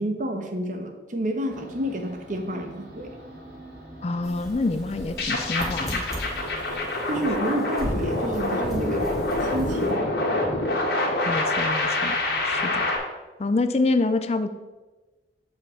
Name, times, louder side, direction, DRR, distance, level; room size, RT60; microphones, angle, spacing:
voice 1, 0.0-3.1 7.1-9.1 9.4-10.1, right 1 dB, 45° right, 4 dB, 1.0 m, -29 dB
sound 1, 1.5-12.9, right 1 dB, 90° right, 1.9 m, -44 dB
voice 2, 4.0-6.0 11.3-12.2 12.4-12.8 13.4-14.5, left 3 dB, 35° left, 10 dB, 0.4 m, -26 dB
sound 2, 4.2-9.9, equal, 5° right, 1.3 m, -40 dB
sound 3, 5.0-13.0, left 2 dB, 65° left, 1.9 m, -26 dB
7.0 x 5.6 x 5.2 m, 1.2 s
head